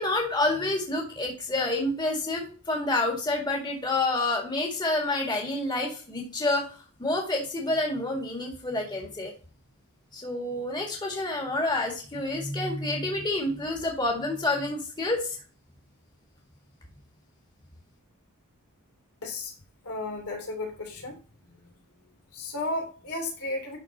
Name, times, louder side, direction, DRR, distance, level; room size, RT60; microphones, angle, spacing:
voice 1, 0.0-6.7 7.0-9.3 10.1-15.4, left 2 dB, 20° left, -1 dB, 1.9 m, -28 dB
voice 2, 19.2-19.5 19.8-21.2 22.3-23.8, left 2 dB, 80° left, 2 dB, 2.9 m, -33 dB
11.5 x 4.2 x 2.7 m, 0.37 s
head